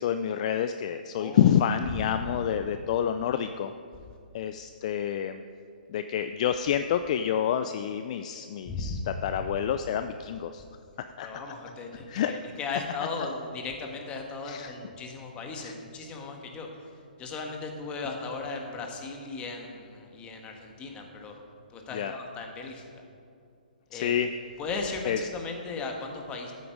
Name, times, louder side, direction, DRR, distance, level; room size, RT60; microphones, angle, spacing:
voice 1, 0.0-3.7 4.3-5.4 5.9-10.6 11.0-11.3 12.1-12.3 14.5-14.7 15.6-15.7 21.9-22.1 23.9-24.3 25.1-25.2, left 9 dB, 45° left, 9 dB, 0.4 m, -28 dB
voice 2, 1.2-1.5 1.9-2.1 8.6-9.5 11.2-16.9 17.2-21.4 21.7-22.9 23.9-24.1 24.6-26.5, left 3 dB, 20° left, 2 dB, 1.6 m, -37 dB
13.5 x 8.6 x 4.8 m, 2.4 s
hypercardioid pair, 135°, 5 cm